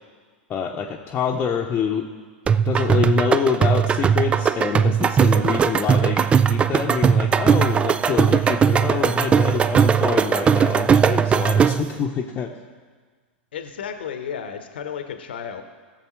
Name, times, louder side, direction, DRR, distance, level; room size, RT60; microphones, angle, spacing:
voice 1, 0.5-2.1 2.6-12.5, left 7 dB, 30° left, 0 dB, 0.9 m, -26 dB
sound 1, 1.0-1.1 1.5-6.2 7.1-12.7 13.5-14.0, right 5 dB, 35° right, 2.1 m, -48 dB
sound 2, 2.5-12.0, right 7 dB, 20° right, 0.3 m, -19 dB
voice 2, 13.5-15.6, left 7 dB, 70° left, 7 dB, 0.9 m, -33 dB
19.0 x 7.1 x 3.1 m, 1.5 s
figure-of-eight pair, 90°, 6 cm